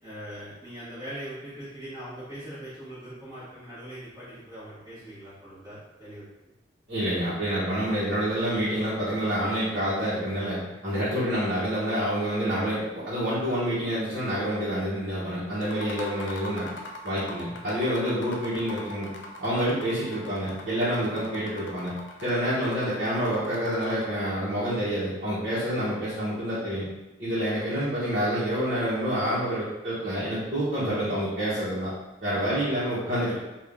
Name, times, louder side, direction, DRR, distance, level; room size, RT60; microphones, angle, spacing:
voice 1, 0.0-6.2 32.4-32.8, right 1 dB, 20° right, -14 dB, 1.2 m, -41 dB
voice 2, 6.9-16.7 17.0-19.1 19.4-21.9 22.2-26.8 27.2-31.9 32.2-33.3, equal, 50° right, -11 dB, 1.2 m, -27 dB
sound 1, 15.6-24.2, left 2 dB, 65° left, 0.6 m, -42 dB
3.6 x 2.4 x 3.6 m, 1.0 s
head